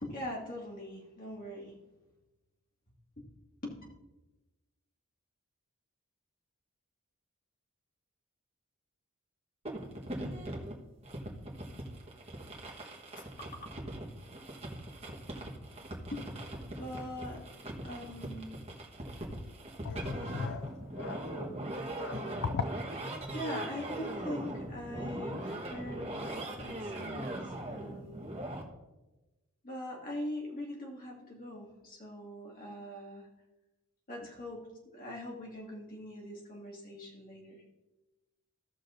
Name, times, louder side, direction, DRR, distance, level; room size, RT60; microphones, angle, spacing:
voice 1, 0.0-1.8 3.2-3.3 3.6-3.8 16.1-16.2 16.7-17.4 17.8-18.6 20.4-20.7 23.3-28.3 29.6-33.3 34.1-34.6 34.9-37.6, left 1 dB, 40° left, -2 dB, 2.0 m, -42 dB
sound 1, 9.7-28.6, right 1 dB, 30° right, 1.4 m, -40 dB
voice 2, 19.8-22.7, left 5 dB, 55° left, 9 dB, 0.4 m, -38 dB
15.5 x 6.4 x 2.6 m, 1.1 s
head